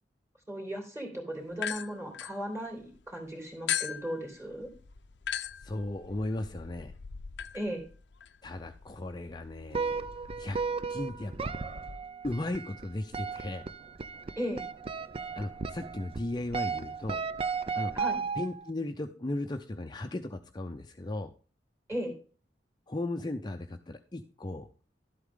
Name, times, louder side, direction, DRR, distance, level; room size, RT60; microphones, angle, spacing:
voice 1, 0.5-4.7 7.5-7.8 14.4-14.6 17.9-18.2 21.9-22.1, equal, 15° right, 2 dB, 3.3 m, -36 dB
sound 1, 1.5-3.0 3.7-12.0, left 9 dB, 75° left, 0.6 m, -40 dB
voice 2, 5.6-6.9 8.4-10.0 10.4-10.6 10.9-11.5 12.2-13.7 15.4-17.2 17.8-17.9 18.4-21.3 22.9-24.7, left 1 dB, 25° left, 6 dB, 0.6 m, -36 dB
sound 2, 9.7-18.7, right 5 dB, 30° right, 0.5 m, -35 dB
12.0 x 8.2 x 3.7 m, 0.38 s
head